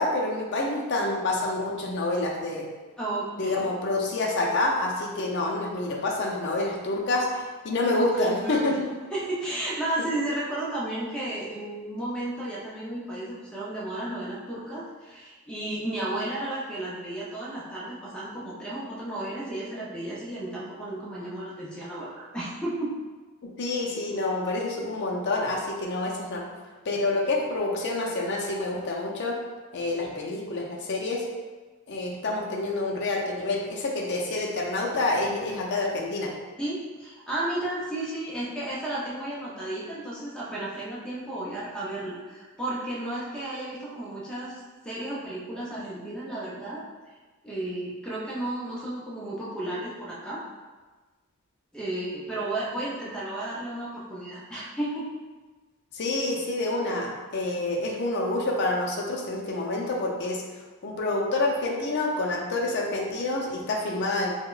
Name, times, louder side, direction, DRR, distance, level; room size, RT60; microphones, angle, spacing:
voice 1, 0.0-2.6 3.4-8.9 10.0-10.1 23.4-26.4 26.9-29.4 29.7-31.2 31.9-36.3 55.9-60.4 60.8-64.3, left 2 dB, 50° left, -1 dB, 0.5 m, -27 dB
voice 2, 3.0-3.7 8.1-8.8 9.1-22.9 36.6-46.8 47.4-50.4 51.7-55.1, right 1 dB, 5° left, -7 dB, 0.6 m, -33 dB
4.0 x 2.1 x 2.4 m, 1.3 s
head